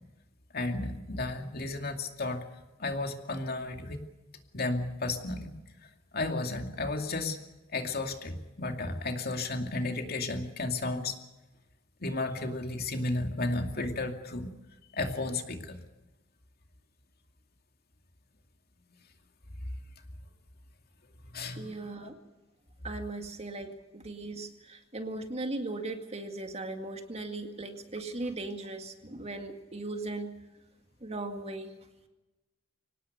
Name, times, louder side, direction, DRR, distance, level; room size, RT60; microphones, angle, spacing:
voice 1, 0.5-2.4 2.8-4.0 4.5-5.5 5.8-7.4 7.7-11.2 12.0-14.5 14.9-15.8 21.3-22.0, left 2 dB, 50° left, 5 dB, 2.5 m, -33 dB
voice 2, 21.6-22.2 22.8-30.3 31.0-31.7, right 2 dB, 30° right, 6 dB, 2.1 m, -38 dB
25.0 x 18.5 x 6.8 m, 1.1 s
head